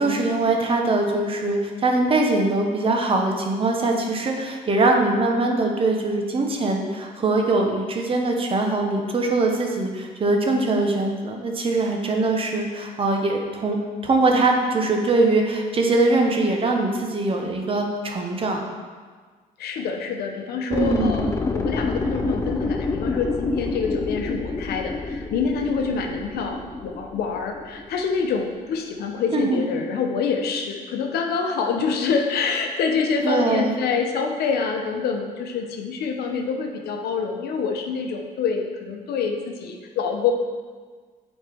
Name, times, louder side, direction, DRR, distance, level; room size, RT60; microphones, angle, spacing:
voice 1, 0.0-18.7 20.7-21.3 29.3-29.6 33.2-33.8, right 2 dB, 35° right, 2 dB, 0.9 m, -22 dB
voice 2, 19.6-40.3, left 5 dB, 70° left, 3 dB, 0.9 m, -26 dB
sound 1, 20.7-28.5 28.8-28.9, left 3 dB, 15° left, 0.4 m, -28 dB
8.1 x 4.3 x 3.5 m, 1.5 s
cardioid pair, 110°, 17 cm